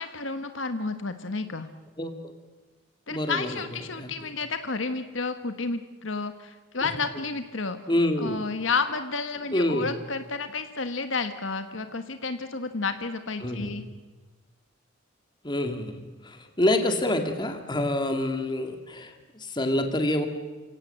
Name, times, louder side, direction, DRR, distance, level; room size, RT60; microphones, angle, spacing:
voice 1, 0.0-1.7 3.1-7.8 8.2-13.8, left 4 dB, 70° left, 9 dB, 1.3 m, -31 dB
voice 2, 3.1-3.6 4.0-4.1 7.9-8.4 9.5-9.9 13.4-13.8 15.4-20.3, left 1 dB, 25° left, 5 dB, 2.3 m, -27 dB
28.5 x 17.0 x 7.8 m, 1.3 s
head